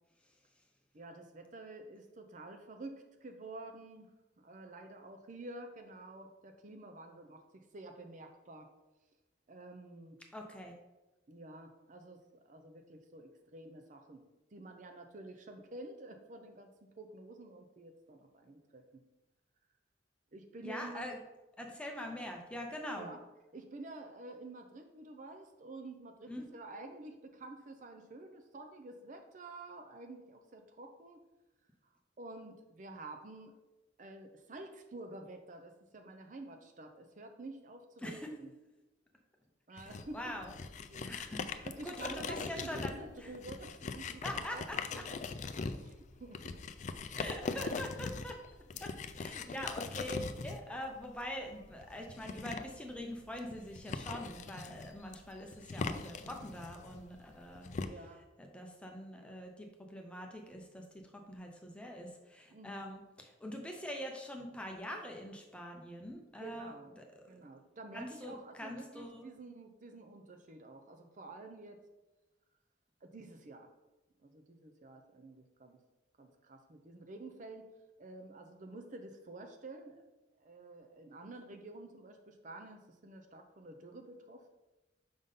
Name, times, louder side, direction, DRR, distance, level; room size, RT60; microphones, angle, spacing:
voice 1, 0.9-4.1 4.4-8.7 9.5-10.2 11.3-14.2 14.5-19.0 20.3-21.1 22.9-23.2 23.5-31.2 32.2-33.5 34.0-38.5 39.7-40.4 40.9-41.1 41.6-45.2 45.8-46.6 47.2-47.6 48.7-48.8 49.5-49.6 57.8-58.2 62.5-62.8 66.4-66.9 67.3-71.8 73.0-73.7 74.2-75.8 76.2-77.7 78.0-80.0 80.4-84.5, right 2 dB, 45° right, 6 dB, 0.5 m, -50 dB
voice 2, 10.3-10.7 20.6-21.2 21.6-23.1 26.3-26.5 38.0-38.3 39.7-40.5 41.0-43.3 44.2-45.0 47.1-48.4 48.8-57.7 58.4-67.0 67.9-69.3, equal, 5° left, 2 dB, 0.7 m, -44 dB
sound 1, 39.8-57.9, left 4 dB, 40° left, 0.3 m, -41 dB
5.1 x 3.6 x 5.5 m, 1.1 s
head